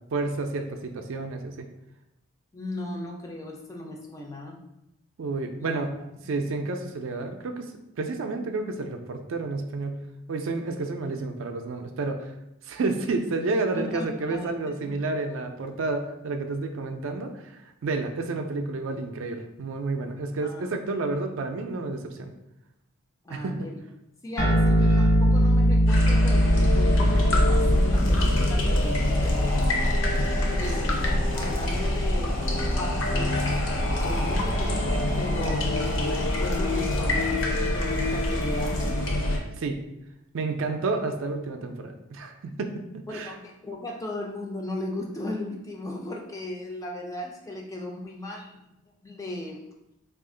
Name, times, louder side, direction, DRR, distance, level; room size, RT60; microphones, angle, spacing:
voice 1, 0.1-1.7 5.2-6.0 6.3-7.7 8.0-10.0 10.3-12.3 12.6-22.3 23.3-23.7 39.6-39.8 40.3-43.3, right 3 dB, 65° right, 6 dB, 0.3 m, -30 dB
voice 2, 2.5-4.6 5.6-5.8 13.8-14.5 14.8-15.0 20.4-20.7 23.2-23.8 24.2-30.1 30.6-31.1 31.3-32.4 32.7-33.5 34.0-39.2 40.6-40.8 43.1-48.6 49.0-49.7, left 1 dB, 15° left, 0 dB, 0.3 m, -37 dB
sound 1, 24.4-31.2, equal, 90° left, 1.0 m, -22 dB
sound 2, 25.9-39.4, left 1 dB, 55° left, 0.6 m, -25 dB
2.8 x 2.4 x 3.7 m, 0.85 s
head